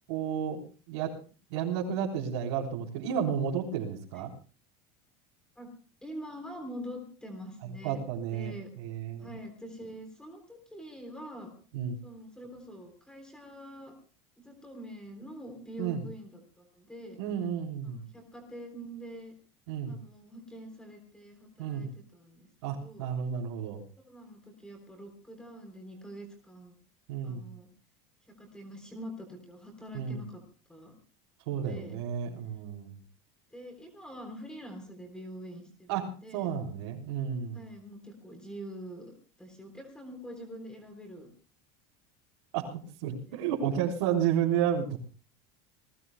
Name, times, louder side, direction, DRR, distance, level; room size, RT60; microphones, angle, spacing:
voice 1, 0.1-1.2 1.5-4.3 7.8-9.3 11.7-12.0 15.8-16.1 17.2-18.0 19.7-20.0 21.6-21.9 22.6-23.8 27.1-27.5 29.9-30.2 31.5-33.0 35.9-36.1 36.3-37.6 42.5-45.0, right 8 dB, 80° right, -2 dB, 3.8 m, -32 dB
voice 2, 6.0-8.0 8.3-8.7 9.2-11.5 12.0-13.9 14.4-17.2 18.1-19.3 19.9-22.5 22.8-23.1 24.0-26.7 27.2-27.7 28.4-30.4 30.7-31.0 31.5-32.0 33.5-36.5 37.5-41.3 43.3-43.5, equal, 5° left, 5 dB, 3.5 m, -45 dB
28.0 x 20.0 x 2.2 m, 0.38 s
supercardioid pair, 155°, 14 cm